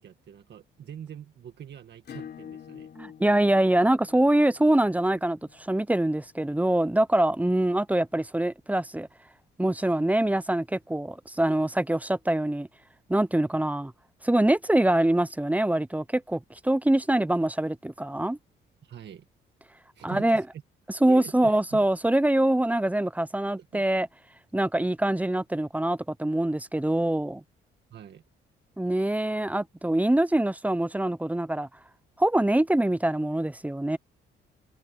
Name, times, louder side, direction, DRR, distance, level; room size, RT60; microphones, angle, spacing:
voice 1, 0.0-2.9 18.8-19.3 19.9-20.6 21.0-21.9 23.6-23.8 24.7-25.0 27.9-28.2, right 9 dB, 60° right, 1.8 m, -44 dB
Acoustic guitar / Strum, 2.0-7.3, left 8 dB, 55° left, 3.3 m, -48 dB
voice 2, 3.0-9.1 9.6-12.7 13.1-13.9 14.2-18.4 20.0-20.4 21.0-24.1 24.5-27.4 28.8-31.7 32.2-34.0, right 1 dB, 5° right, 0.7 m, -24 dB
cardioid pair, 90°, 20 cm